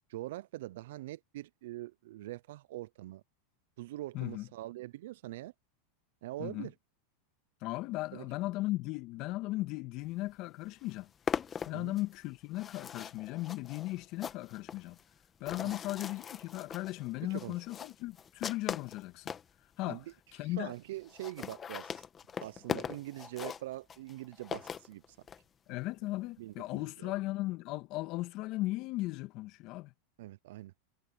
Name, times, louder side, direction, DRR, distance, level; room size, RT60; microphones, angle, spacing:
voice 1, 0.1-3.2 3.8-5.5 6.2-6.7 8.1-8.2 11.7-12.0 15.6-15.8 17.2-17.6 19.9-20.0 20.4-22.1 22.4-25.2 26.4-27.1 30.2-30.7, right 16 dB, 70° right, 0.4 m, -43 dB
voice 2, 4.1-4.5 6.4-6.7 7.6-11.1 11.6-15.0 15.4-19.3 19.8-20.1 20.3-20.7 25.7-29.9, left 18 dB, 50° left, 1.7 m, -37 dB
sound 1, 10.3-10.4 10.6-19.5 20.1-20.2 20.4-20.5 20.7-20.8 21.0-25.4, left 7 dB, 25° left, 1.6 m, -41 dB
hypercardioid pair, 110°, 0 cm